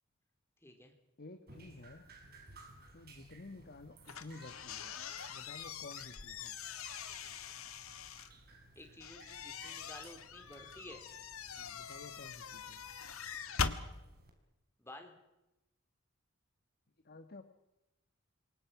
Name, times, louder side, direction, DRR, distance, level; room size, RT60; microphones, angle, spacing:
voice 1, 0.6-0.9 8.8-11.0 14.8-15.1, left 1 dB, 10° left, 4 dB, 3.9 m, -52 dB
voice 2, 1.2-2.0 2.9-4.9 5.3-6.5 11.5-12.8 17.0-17.4, left 2 dB, 50° left, 8 dB, 1.4 m, -52 dB
Drip, 1.5-14.3, right 2 dB, 50° right, 5.0 m, -59 dB
sound 1, 4.1-8.3 9.0-13.8, left 6 dB, 90° left, 1.6 m, -42 dB
27.5 x 23.5 x 6.0 m, 0.95 s
head